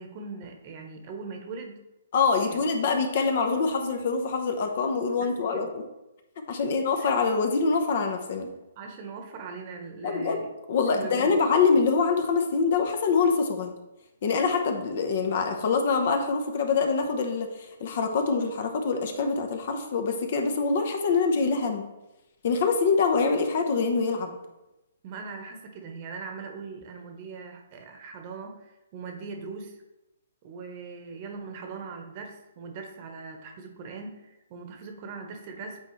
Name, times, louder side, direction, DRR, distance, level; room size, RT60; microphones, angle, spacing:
voice 1, 0.0-1.8 2.4-2.6 5.2-5.7 6.7-7.2 8.8-10.5 10.9-11.4 25.0-29.8 30.4-35.8, right 4 dB, 35° right, 4 dB, 1.0 m, -40 dB
voice 2, 2.1-5.7 6.5-8.5 10.0-13.7 14.2-21.9 22.4-24.3, left 4 dB, 50° left, 5 dB, 0.9 m, -25 dB
8.6 x 4.3 x 3.1 m, 0.96 s
hypercardioid pair, 150°, 0 cm